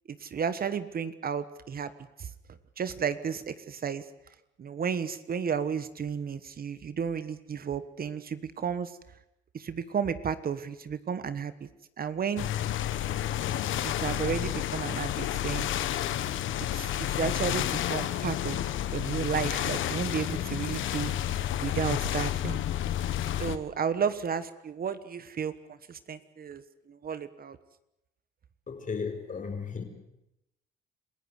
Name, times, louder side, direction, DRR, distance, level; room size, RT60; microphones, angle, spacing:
voice 1, 0.1-1.9 2.2-2.3 2.8-4.0 4.6-8.9 9.5-11.7 12.0-12.5 13.8-15.7 16.7-18.6 18.9-21.2 21.6-22.6 23.4-25.5 25.9-27.6, right 7 dB, 50° right, 1.3 m, -32 dB
sound 1, 12.4-23.6, left 12 dB, 80° left, 1.3 m, -30 dB
voice 2, 28.7-29.8, left 5 dB, 40° left, 4.5 m, -35 dB
27.5 x 15.5 x 8.1 m
cardioid pair, 90°, 20 cm